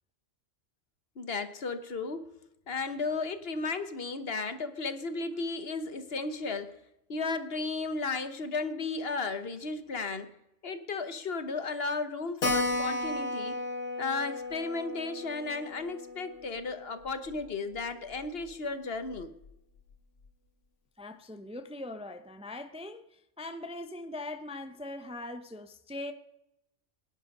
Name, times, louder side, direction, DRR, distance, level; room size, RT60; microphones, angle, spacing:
voice 1, 1.2-2.3 2.7-6.7 7.1-10.3 10.6-13.6 14.0-19.3, left 3 dB, 55° left, 1.3 m, -34 dB
Keyboard (musical), 12.4-17.5 17.7-17.8 18.1-18.2 18.5-18.6 19.2-19.5, left 2 dB, 85° left, 2.0 m, -34 dB
voice 2, 21.0-26.1, left 2 dB, 5° right, 0.6 m, -41 dB
22.5 x 9.9 x 5.4 m
omnidirectional pair, 1.2 m